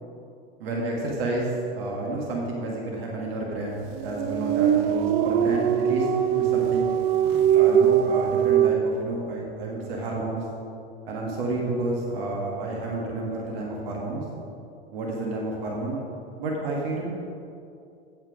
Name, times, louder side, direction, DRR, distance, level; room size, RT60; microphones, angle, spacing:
voice 1, 0.6-6.9 7.5-10.4 11.0-14.2 14.9-16.0 16.4-17.1, right 2 dB, 70° right, -2 dB, 1.6 m, -30 dB
sound 1, 3.9-8.7, right 9 dB, 40° right, 0.5 m, -21 dB
8.3 x 7.2 x 5.0 m, 2.6 s
hypercardioid pair, 85°, 31 cm